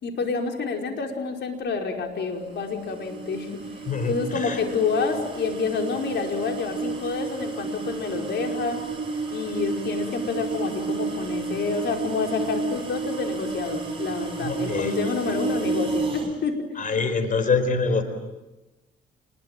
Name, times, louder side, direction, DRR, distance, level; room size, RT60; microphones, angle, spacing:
voice 1, 0.0-3.5 4.1-8.9 9.3-16.6, left 4 dB, 60° left, 3 dB, 5.1 m, -28 dB
sound 1, 2.4-16.3, right 3 dB, 25° right, 7.1 m, -31 dB
voice 2, 3.9-4.6 14.4-15.0 15.2-15.3 16.8-18.0, left 4 dB, 40° left, 9 dB, 4.5 m, -25 dB
27.0 x 22.0 x 9.2 m, 1.1 s
cardioid pair, 90°, 20 cm